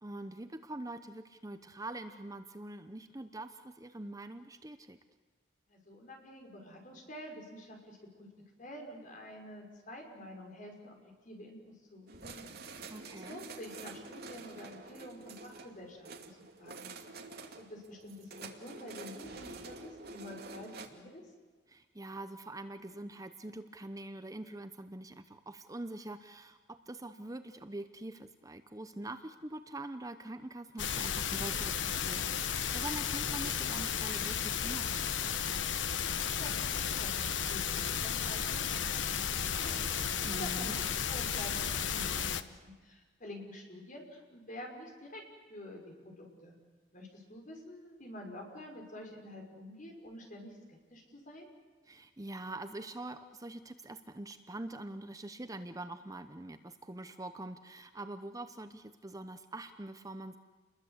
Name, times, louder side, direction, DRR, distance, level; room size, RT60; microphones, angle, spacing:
voice 1, 0.0-5.0 12.9-13.4 21.7-35.3 40.2-40.8 51.9-60.4, right 2 dB, 20° right, 9 dB, 0.9 m, -44 dB
voice 2, 5.7-8.3 8.6-11.0 11.2-12.8 13.1-16.9 17.6-21.2 36.2-40.0 40.3-40.8 41.1-45.2 45.5-46.6 46.9-51.5, left 1 dB, 45° left, 2 dB, 5.8 m, -48 dB
sound 1, 12.1-20.9, right 3 dB, 55° right, 2.5 m, -48 dB
sound 2, 30.8-42.4, left 8 dB, 85° left, 1.1 m, -34 dB
29.5 x 21.5 x 8.1 m, 1.4 s
head